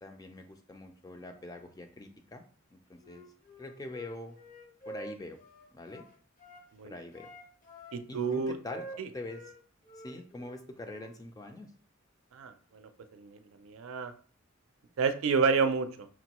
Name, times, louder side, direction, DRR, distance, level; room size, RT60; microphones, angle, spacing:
voice 1, 0.0-2.4 2.7-3.2 3.6-4.4 4.9-5.4 5.7-6.1 6.8-7.3 8.1-8.9 9.1-9.4 10.0-11.7, left 2 dB, 20° left, 5 dB, 0.4 m, -44 dB
Wind instrument woodwind instrument, 3.0-6.7 7.1-9.6 9.8-11.1, right 1 dB, 40° left, 0.8 m, -48 dB
voice 2, 7.9-8.6 9.0-9.1 12.3-14.1 15.0-16.1, right 5 dB, 90° right, 9 dB, 0.4 m, -30 dB
5.8 x 2.2 x 2.9 m, 0.43 s
head